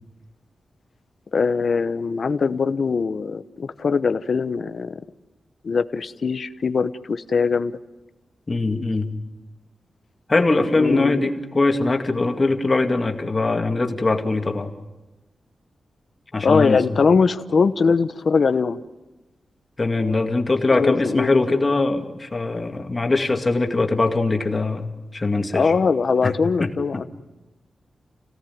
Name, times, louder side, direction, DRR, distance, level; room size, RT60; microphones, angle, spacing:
voice 1, 1.3-5.0 5.6-7.7 10.8-11.3 16.4-18.8 20.7-21.4 25.5-27.0, left 5 dB, 55° left, 11 dB, 1.0 m, -21 dB
voice 2, 8.5-9.1 10.3-14.7 16.3-16.8 19.8-24.9 25.1-25.7 26.2-26.3 26.6-27.1, left 3 dB, 30° left, 4 dB, 2.3 m, -21 dB
30.0 x 17.5 x 9.4 m, 1.1 s
wide cardioid pair, 130°, 0 cm